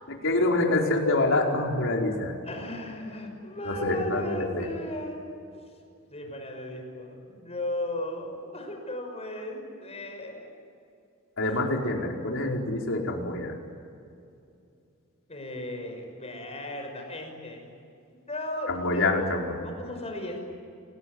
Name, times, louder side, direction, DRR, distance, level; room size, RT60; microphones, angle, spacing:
voice 1, 0.2-2.3 3.6-4.6 11.4-13.5 18.7-19.6, left 2 dB, 65° left, 0 dB, 5.0 m, -26 dB
voice 2, 2.5-5.2 6.1-10.5 15.3-17.7 18.1-19.0 19.6-20.4, left 1 dB, 30° left, 3 dB, 5.8 m, -36 dB
28.5 x 20.0 x 9.8 m, 2.5 s
head